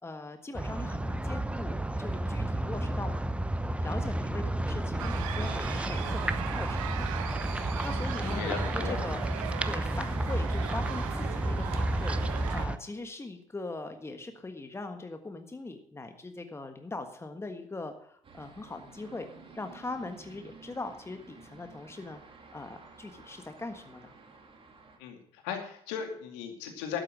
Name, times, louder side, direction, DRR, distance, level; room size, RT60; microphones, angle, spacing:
voice 1, 0.0-3.1 3.8-7.1 7.8-9.2 9.6-12.2 12.5-19.2 19.5-22.2 22.5-24.1, left 2 dB, 15° left, 7 dB, 1.4 m, -41 dB
sound 1, 0.5-12.8, right 1 dB, 5° right, 0.8 m, -31 dB
sound 2, 5.0-12.7, right 12 dB, 70° right, 0.9 m, -39 dB
voice 2, 8.2-9.1 25.0-27.0, left 8 dB, 65° left, 4 dB, 2.3 m, -37 dB
sound 3, 18.2-25.0, right 4 dB, 30° right, 2.8 m, -53 dB
12.0 x 9.1 x 6.2 m, 0.66 s
figure-of-eight pair, 55°, 18 cm